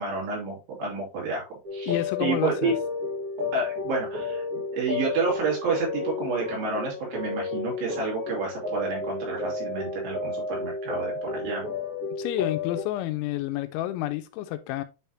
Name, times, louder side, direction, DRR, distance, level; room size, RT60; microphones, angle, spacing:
voice 1, 0.0-2.7 3.5-4.4 4.7-11.6, right 4 dB, 70° right, 4.5 m, -30 dB
sound 1, 1.6-12.8, left 4 dB, 50° right, 1.8 m, -32 dB
voice 2, 1.9-2.7 12.2-14.8, left 14 dB, 85° left, 3.0 m, -29 dB
9.8 x 3.5 x 2.7 m
omnidirectional pair, 5.3 m